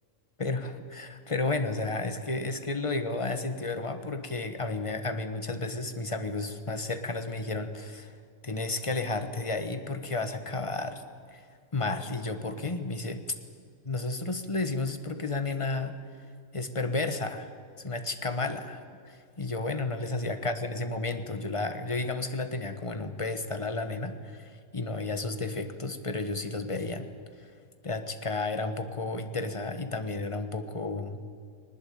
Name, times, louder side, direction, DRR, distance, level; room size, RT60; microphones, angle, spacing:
voice 1, 0.4-8.2 8.4-11.0 11.3-11.4 11.7-13.2 13.8-16.0 16.5-17.5 17.8-27.1 27.4-27.5 27.8-31.2, left 3 dB, 25° left, 8 dB, 1.4 m, -32 dB
21.0 x 19.5 x 8.7 m, 2.2 s
omnidirectional pair, 1.3 m